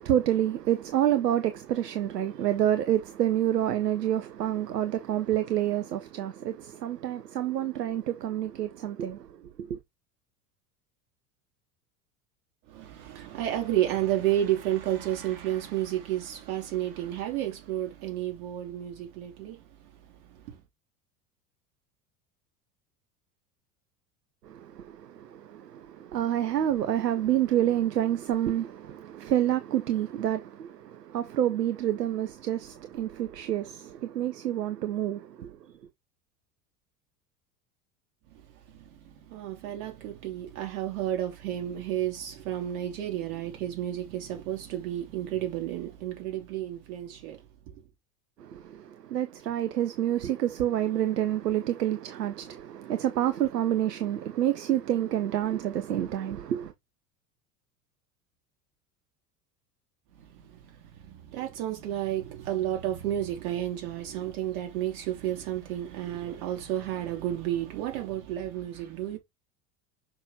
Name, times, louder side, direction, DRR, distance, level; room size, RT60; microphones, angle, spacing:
voice 1, 0.0-9.3 9.6-9.8 24.4-35.5 48.4-56.7, right 11 dB, 80° right, 0.9 m, -28 dB
voice 2, 12.7-19.9 20.3-20.6 38.8-47.4 60.1-69.2, right 12 dB, 60° right, 3.0 m, -32 dB
6.5 x 5.9 x 2.9 m
figure-of-eight pair, 80°, 47 cm